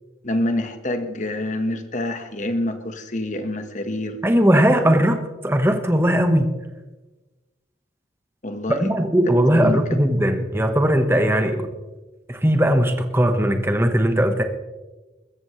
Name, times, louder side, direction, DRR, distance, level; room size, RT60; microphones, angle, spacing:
voice 1, 0.2-4.2 8.4-8.9 9.5-9.8, left 1 dB, 40° left, 7 dB, 1.4 m, -26 dB
voice 2, 4.2-6.6 8.8-11.7 12.3-14.4, equal, 15° right, 6 dB, 1.3 m, -19 dB
22.5 x 14.0 x 3.2 m, 1.2 s
head